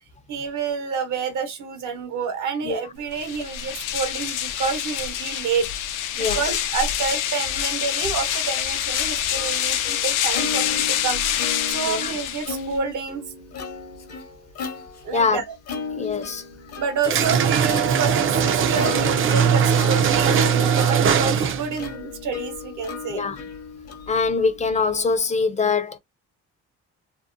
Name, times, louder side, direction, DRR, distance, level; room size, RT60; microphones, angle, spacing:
voice 1, 0.3-5.7 6.1-11.2 11.7-13.2 15.0-15.4 16.8-23.2, right 5 dB, 75° right, 1.0 m, -28 dB
sound 1, 3.1-12.8, left 10 dB, 85° left, 0.5 m, -26 dB
Plucked string instrument, 8.4-25.2, left 5 dB, 55° left, 0.7 m, -36 dB
voice 2, 11.8-12.2 15.1-15.4 15.9-16.4 23.1-23.4 24.1-26.0, left 4 dB, 25° left, 0.4 m, -23 dB
sound 2, 17.0-21.8, right 7 dB, 45° right, 0.4 m, -20 dB
2.7 x 2.0 x 2.5 m
cardioid pair, 90°, 30 cm